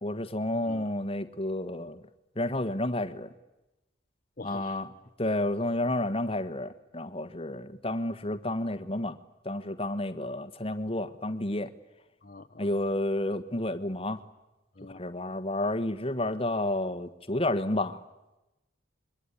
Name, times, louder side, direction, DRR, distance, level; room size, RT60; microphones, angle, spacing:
voice 1, 0.0-2.0 2.3-3.3 4.4-4.9 5.2-9.2 9.4-11.7 12.6-14.2 14.9-18.0, left 1 dB, 30° left, 10 dB, 1.4 m, -30 dB
voice 2, 4.4-4.8 12.2-12.7 14.8-15.0, left 3 dB, 45° left, 8 dB, 0.9 m, -45 dB
26.0 x 23.0 x 9.9 m, 0.99 s
head